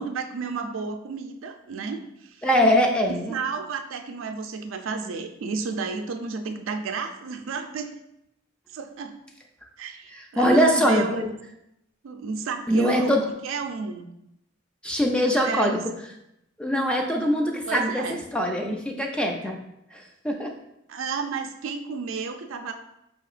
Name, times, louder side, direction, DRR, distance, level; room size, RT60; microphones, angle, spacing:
voice 1, 0.0-2.4 3.1-7.9 8.7-9.2 9.8-11.3 12.0-14.1 15.3-15.8 17.7-18.2 20.9-22.7, right 4 dB, 70° right, 4 dB, 0.4 m, -32 dB
voice 2, 2.4-3.4 10.1-11.3 12.7-13.2 14.8-15.8 16.6-19.6 19.9-20.5, equal, 5° left, 2 dB, 0.3 m, -22 dB
5.1 x 2.8 x 2.4 m, 0.82 s
head